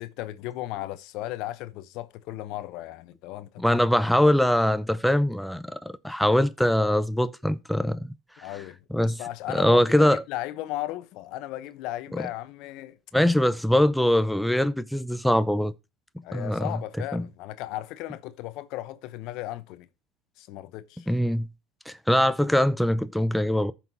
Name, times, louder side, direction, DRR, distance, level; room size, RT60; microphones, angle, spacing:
voice 1, 0.0-3.8 8.4-13.0 16.2-19.9 20.4-21.1, left 15 dB, 65° left, 0.9 m, -36 dB
voice 2, 3.6-8.0 8.9-9.2 9.5-10.2 12.1-12.2 13.1-15.7 16.3-16.6 17.1-17.2 21.1-21.5 21.9-23.7, left 1 dB, ahead, 0.6 m, -22 dB
14.5 x 5.9 x 2.8 m
hypercardioid pair, 85°, 0 cm